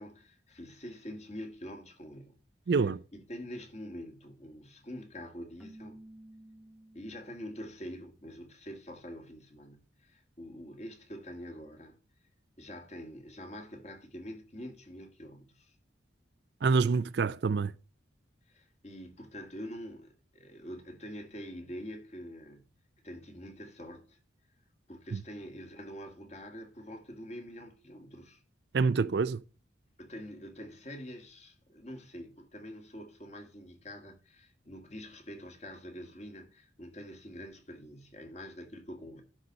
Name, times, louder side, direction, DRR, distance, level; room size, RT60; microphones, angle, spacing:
voice 1, 0.0-2.4 3.1-6.0 6.9-12.0 12.6-15.7 18.5-22.8 23.0-24.2 24.9-28.4 30.0-39.2, equal, 35° left, 1.7 m, -45 dB
voice 2, 2.7-3.0 16.6-17.7 25.1-25.2 28.7-29.4, right 4 dB, 60° right, 0.4 m, -26 dB
Keyboard (musical), 5.6-7.6, right 1 dB, ahead, 1.2 m, -53 dB
11.5 x 4.1 x 6.3 m
head